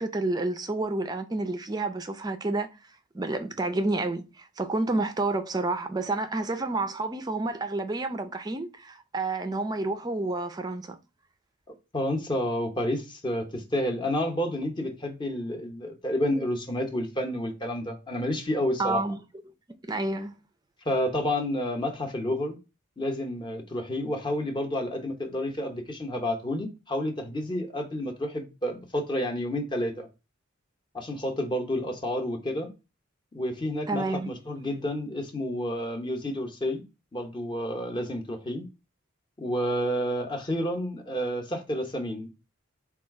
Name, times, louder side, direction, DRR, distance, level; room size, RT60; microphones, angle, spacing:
voice 1, 0.0-2.7 3.1-11.0 18.8-19.2 19.9-20.4 33.9-34.3, right 2 dB, 20° right, 0.4 m, -29 dB
voice 2, 11.9-19.0 20.9-22.6 23.0-30.1 30.9-32.7 33.3-36.8 37.1-38.6 39.4-42.3, left 1 dB, 20° left, 0.7 m, -30 dB
4.2 x 2.3 x 4.5 m
head